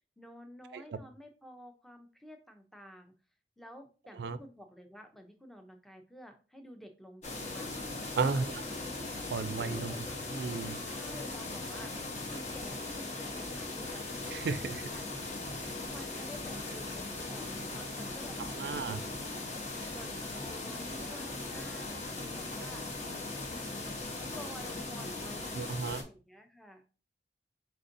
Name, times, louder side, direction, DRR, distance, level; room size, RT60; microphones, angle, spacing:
voice 1, 0.2-3.1 3.6-8.5 9.6-10.1 10.8-11.9 12.3-14.0 14.6-15.4 15.9-19.1 19.9-22.8 23.4-26.8, equal, ahead, 4 dB, 0.5 m, -51 dB
sound 1, 7.2-26.0, left 2 dB, 40° left, 0.8 m, -39 dB
voice 2, 9.3-9.9 10.3-10.8 14.3-14.8 18.6-19.0 25.5-26.0, right 4 dB, 70° right, 13 dB, 0.3 m, -33 dB
4.4 x 4.0 x 2.6 m, 0.36 s
head